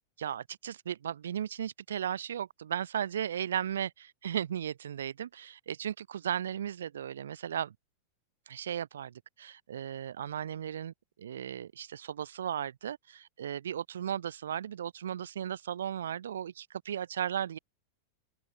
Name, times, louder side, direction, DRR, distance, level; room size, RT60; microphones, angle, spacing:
voice 1, 0.2-7.8 8.5-10.9 11.2-17.6, right 9 dB, 65° right, 2.0 m, -36 dB
open air
figure-of-eight pair, 90°, 0 cm